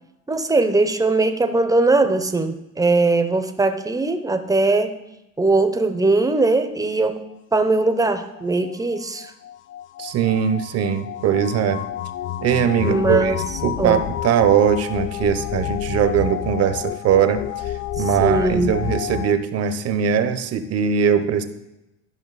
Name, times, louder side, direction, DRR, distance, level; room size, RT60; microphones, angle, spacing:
voice 1, 0.3-4.9 5.4-7.2 7.5-9.3 12.8-13.4 13.8-14.0 18.0-18.8, right 3 dB, 10° right, 8 dB, 0.8 m, -20 dB
sound 1, 8.1-19.3, left 12 dB, 35° left, 0.4 m, -29 dB
voice 2, 10.0-11.8 12.4-13.3 13.6-17.6 18.0-21.4, right 8 dB, 45° right, 10 dB, 0.9 m, -20 dB
13.0 x 5.7 x 4.1 m, 0.92 s
supercardioid pair, 110°, 35 cm